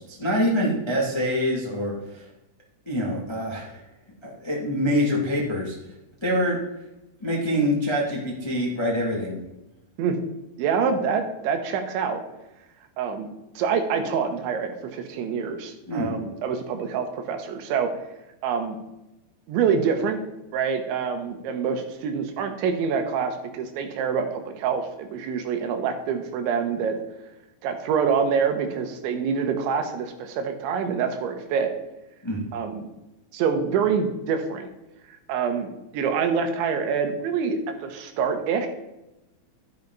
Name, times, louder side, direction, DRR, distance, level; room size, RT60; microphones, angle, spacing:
voice 1, 0.0-2.3 2.8-3.8 4.2-5.7 6.2-6.6 7.2-9.4 15.9-16.1 32.2-32.4, equal, 40° left, -3 dB, 0.4 m, -25 dB
voice 2, 10.6-12.2 13.0-13.3 13.6-17.9 18.4-18.8 19.5-20.2 20.5-27.0 27.6-31.7 32.5-32.9 33.3-34.7 35.1-38.7, right 6 dB, 80° right, 6 dB, 3.5 m, -26 dB
12.0 x 10.5 x 4.0 m, 0.94 s
omnidirectional pair, 5.4 m